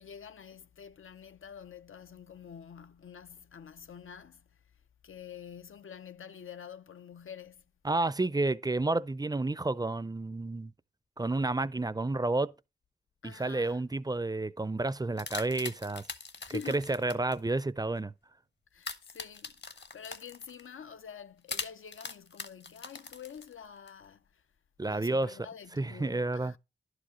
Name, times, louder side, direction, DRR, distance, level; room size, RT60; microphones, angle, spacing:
voice 1, 0.0-4.5 5.0-7.6 13.2-13.8 16.4-16.9 18.7-24.4 24.8-26.6, left 7 dB, 90° left, 0.5 m, -47 dB
voice 2, 7.8-10.7 11.2-12.5 13.2-16.0 16.7-18.1 24.8-25.4 25.8-26.5, right 2 dB, 20° right, 0.4 m, -30 dB
sound 1, 15.0-17.4 18.8-20.7 21.5-23.9, left 4 dB, 60° left, 1.0 m, -42 dB
11.0 x 4.9 x 4.9 m
wide cardioid pair, 90°, 20 cm